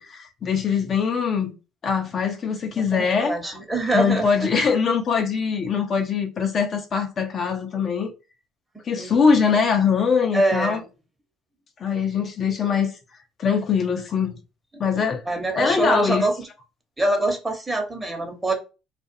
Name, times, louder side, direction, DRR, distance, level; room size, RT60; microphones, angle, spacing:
voice 1, 0.0-1.5 1.8-3.6 3.9-8.1 8.9-10.8 11.8-12.9 13.4-14.4 14.8-15.2 15.5-16.3, left 6 dB, 45° left, 0.6 m, -22 dB
voice 2, 2.9-4.3 9.0-9.2 10.3-10.8 15.3-16.3 17.0-18.5, right 2 dB, 15° right, 1.0 m, -24 dB
2.4 x 2.3 x 2.6 m
hypercardioid pair, 65°, 0 cm